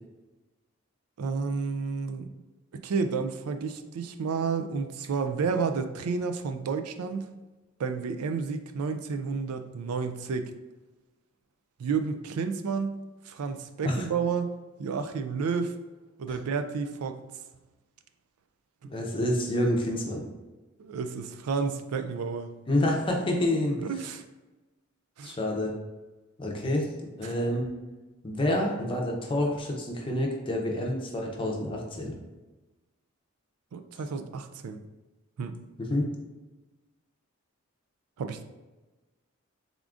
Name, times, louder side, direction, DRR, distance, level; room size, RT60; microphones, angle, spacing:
voice 1, 1.2-2.3 2.8-7.3 7.8-10.5 11.8-13.0 13.3-14.5 14.8-15.8 16.2-17.2 20.8-22.5 23.8-24.2 25.2-25.4 27.2-27.3 33.7-34.8 35.4-35.5 38.2-38.4, right 5 dB, 85° right, 8 dB, 0.4 m, -31 dB
voice 2, 18.9-20.2 22.7-23.8 25.2-25.7 26.4-26.9 27.2-27.7 28.2-32.1 35.8-36.1, left 1 dB, 25° left, 0 dB, 0.6 m, -28 dB
3.6 x 3.6 x 2.4 m, 1.2 s
head